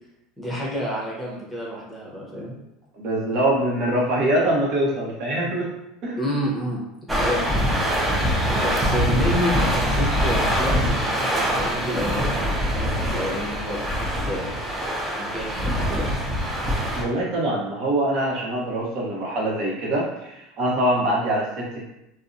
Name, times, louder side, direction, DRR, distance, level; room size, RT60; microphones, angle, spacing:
voice 1, 0.4-2.5 6.2-6.8 7.1-7.4 8.5-12.3 12.7-14.5 15.1-16.1 21.0-21.2, equal, 5° left, -5 dB, 0.8 m, -29 dB
voice 2, 3.0-5.7 6.0-6.2 16.9-21.9, right 1 dB, 55° right, -4 dB, 0.8 m, -24 dB
sound 1, 7.1-17.0, equal, 10° right, 0.4 m, -23 dB
2.5 x 2.0 x 2.5 m, 0.91 s
supercardioid pair, 125°, 0 cm